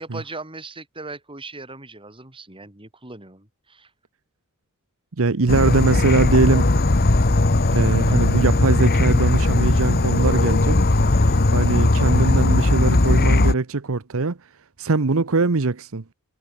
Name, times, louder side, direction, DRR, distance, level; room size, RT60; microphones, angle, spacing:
voice 1, 0.0-3.9, right 3 dB, 25° right, 4.6 m, -38 dB
voice 2, 5.2-6.7 7.7-10.8 11.1-14.4 14.8-16.0, right 3 dB, 65° right, 0.9 m, -21 dB
Insect / Frog, 5.5-13.5, left 2 dB, 45° left, 1.1 m, -18 dB
head